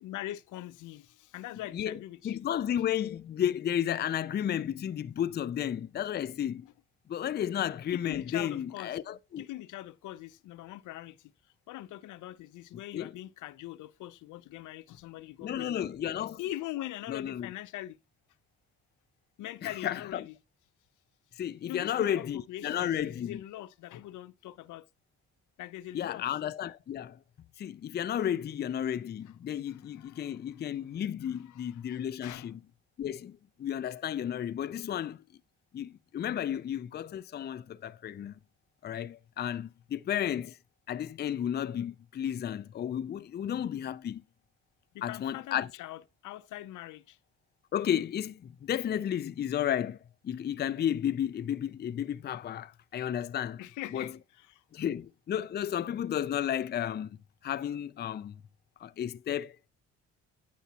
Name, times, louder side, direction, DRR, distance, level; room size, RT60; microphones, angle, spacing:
voice 1, 0.0-2.4 7.9-9.0 9.4-11.2 11.7-15.9 16.4-18.0 19.4-20.4 21.6-24.9 25.6-26.2 29.7-30.4 31.3-32.5 43.5-43.6 44.9-47.2 53.6-54.6, left 14 dB, 80° left, 0.6 m, -42 dB
voice 2, 2.2-6.7 7.1-9.4 12.9-13.1 15.4-16.4 17.1-17.5 19.6-20.3 21.4-23.4 25.9-27.2 27.6-32.6 33.0-35.2 35.7-38.4 38.8-40.6 40.9-44.2 45.0-45.7 47.7-50.0 50.2-53.6 53.9-54.1 54.7-57.2 57.4-58.4 58.8-59.7, left 10 dB, 35° left, 0.4 m, -33 dB
9.3 x 7.0 x 2.8 m
cardioid pair, 90°, 30 cm